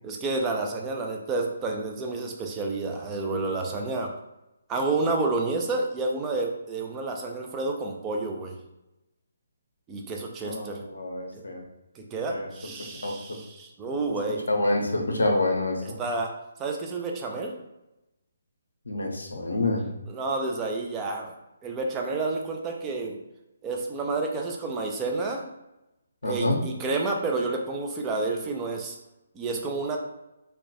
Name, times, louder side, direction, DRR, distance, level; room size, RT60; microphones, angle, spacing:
voice 1, 0.0-4.1 4.7-8.6 9.9-10.8 12.0-14.4 16.0-16.3 16.6-17.5 20.1-21.3 21.6-23.2 23.6-25.4 26.2-29.0 29.3-30.0, right 3 dB, 15° right, 1 dB, 0.3 m, -30 dB
voice 2, 10.4-11.6 12.3-12.5 13.0-13.4 14.5-16.0 18.9-19.9 26.2-26.6, left 2 dB, 70° left, 2 dB, 0.5 m, -27 dB
2.1 x 2.1 x 2.7 m, 0.94 s
figure-of-eight pair, 140°, 0 cm